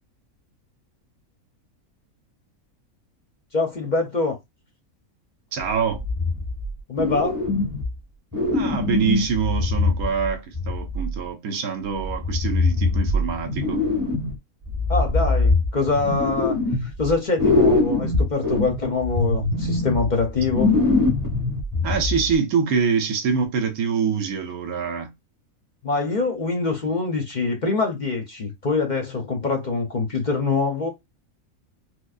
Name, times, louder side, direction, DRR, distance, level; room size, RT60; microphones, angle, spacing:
voice 1, 3.5-4.4 6.9-7.4 14.9-16.6 16.8-20.8 25.8-30.9, left 3 dB, 50° left, 0.6 m, -24 dB
voice 2, 5.5-6.0 8.5-13.8 21.8-25.1, right 6 dB, 80° right, 1.2 m, -25 dB
sound 1, 6.0-6.7 7.0-8.0 8.3-11.2 12.0-14.4 14.7-17.1 17.4-22.3, left 3 dB, 15° right, 1.0 m, -23 dB
4.5 x 2.1 x 2.4 m
omnidirectional pair, 1.5 m